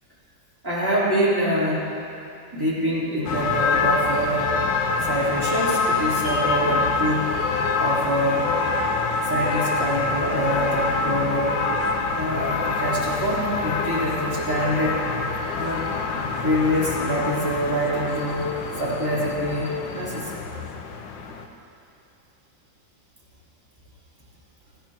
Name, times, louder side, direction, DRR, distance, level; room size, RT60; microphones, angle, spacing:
voice 1, 0.6-2.1 2.5-4.6 5.0-7.4 7.8-8.5 9.2-11.7 12.1-15.0 15.5-15.9 16.4-20.4, equal, 10° right, -10 dB, 3.7 m, -25 dB
sound 1, 3.3-21.5, left 4 dB, 80° left, 1.5 m, -26 dB
18.5 x 15.0 x 3.0 m, 2.7 s
omnidirectional pair, 2.0 m